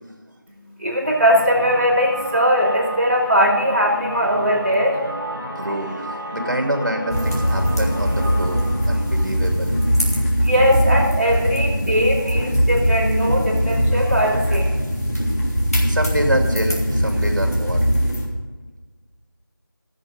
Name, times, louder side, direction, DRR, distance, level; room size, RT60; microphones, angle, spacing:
voice 1, 0.5-5.0 10.1-14.6, equal, 35° right, -5 dB, 3.8 m, -20 dB
sound 1, 1.0-10.7, right 1 dB, 5° left, 0.9 m, -33 dB
voice 2, 5.4-9.7 15.8-17.9, right 1 dB, 55° right, 3 dB, 2.6 m, -26 dB
sound 2, 7.1-18.2, equal, 45° left, 3.2 m, -21 dB
15.5 x 7.7 x 5.1 m, 1.3 s
figure-of-eight pair, 175°, 12 cm